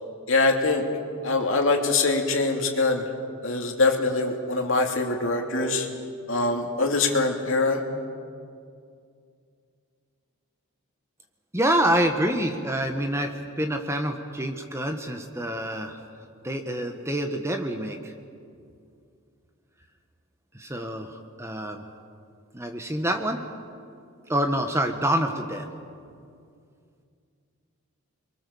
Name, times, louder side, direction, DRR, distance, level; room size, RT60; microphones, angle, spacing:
voice 1, 0.3-0.8 1.2-3.0 3.4-5.9 6.3-7.8, left 3 dB, 60° left, 3 dB, 2.8 m, -23 dB
voice 2, 11.5-16.0 16.4-18.1 20.5-21.8 22.5-23.4 24.3-25.6, right 1 dB, 10° right, 5 dB, 1.3 m, -27 dB
29.5 x 23.0 x 7.1 m, 2.3 s
head